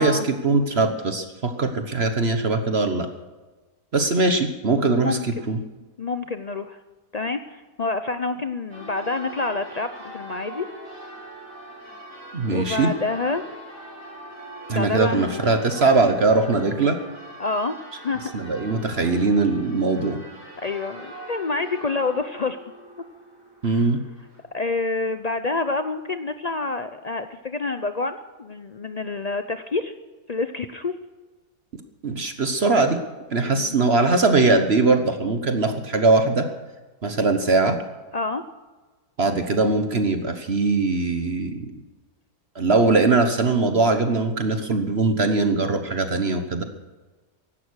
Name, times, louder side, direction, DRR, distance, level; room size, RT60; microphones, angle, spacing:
voice 1, 0.0-3.1 3.9-5.6 12.3-12.9 14.7-17.0 18.3-20.2 23.6-24.0 32.0-33.0 33.3-36.5 37.0-37.8 39.2-41.8 42.5-46.6, right 3 dB, 40° right, 7 dB, 1.3 m, -21 dB
voice 2, 4.9-5.3 6.0-6.8 7.1-10.7 12.5-13.4 14.7-15.6 17.4-18.3 20.6-22.6 23.6-23.9 24.5-29.9 30.3-31.0 33.4-33.7 38.1-38.4, left 3 dB, 80° left, 9 dB, 0.3 m, -28 dB
Church bell, 8.7-24.4, right 1 dB, 75° right, 5.4 m, -42 dB
16.0 x 11.5 x 6.4 m, 1.3 s
omnidirectional pair, 1.8 m